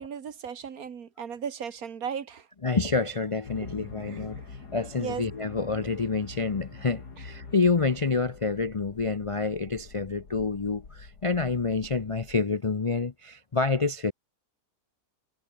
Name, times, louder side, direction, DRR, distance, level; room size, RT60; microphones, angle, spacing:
voice 1, 0.0-2.5 4.1-4.2 5.0-5.2, right 7 dB, 65° right, 1.8 m, -36 dB
voice 2, 2.6-14.1, left 4 dB, 35° left, 0.5 m, -28 dB
sound 1, 3.4-12.4, left 4 dB, 85° left, 3.5 m, -46 dB
omnidirectional pair, 1.7 m